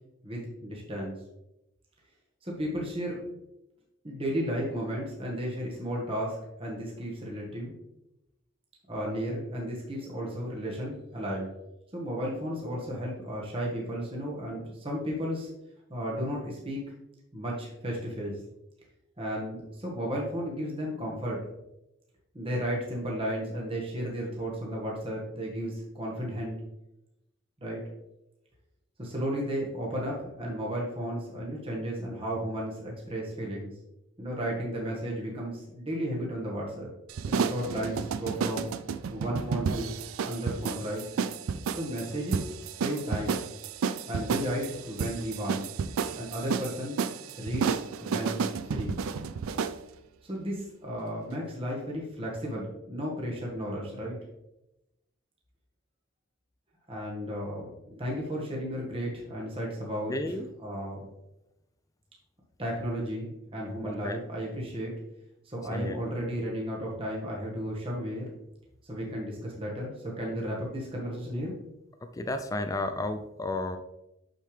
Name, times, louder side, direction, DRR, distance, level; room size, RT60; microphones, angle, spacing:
voice 1, 0.2-1.1 2.4-3.2 4.0-7.8 8.9-11.5 11.9-15.5 15.9-16.8 17.3-18.3 19.2-21.4 22.3-26.6 27.6-27.8 29.0-33.7 34.2-36.9 37.3-38.7 39.1-39.9 40.2-41.0 41.7-43.5 44.0-45.6 46.2-47.0 47.4-49.0 50.2-54.2 56.9-60.3 60.6-61.0 62.6-64.9 65.4-68.3 68.9-71.5, equal, 25° right, -3 dB, 1.4 m, -34 dB
sound 1, 37.1-49.8, right 6 dB, 80° right, 0.4 m, -32 dB
voice 2, 60.1-60.5 63.8-64.2 65.7-66.0 72.1-73.8, left 2 dB, 15° left, 8 dB, 0.4 m, -32 dB
6.6 x 6.5 x 3.3 m, 0.88 s
head